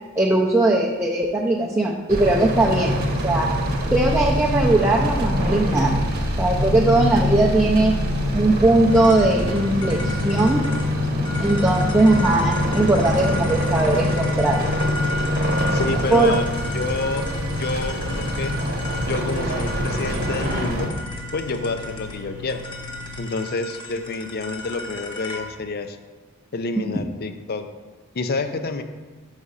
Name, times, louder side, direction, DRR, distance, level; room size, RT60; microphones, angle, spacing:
voice 1, 0.2-2.9 3.2-3.5 3.9-5.9 6.4-7.9 8.3-10.6 11.4-14.7 16.1-16.3, right 2 dB, 10° right, -3 dB, 0.5 m, -19 dB
sound 1, 2.1-20.9, left 1 dB, 45° right, 1.0 m, -24 dB
sound 2, 8.9-25.5, left 1 dB, 20° left, 0.9 m, -35 dB
sound 3, 9.3-23.2, left 3 dB, 70° right, 0.7 m, -40 dB
voice 2, 15.7-16.5 16.7-17.3 17.6-18.5 19.1-20.9 21.3-22.6 23.2-26.0 26.5-27.7 28.1-28.8, left 3 dB, 45° left, 8 dB, 0.5 m, -28 dB
6.3 x 4.9 x 5.5 m, 1.4 s
head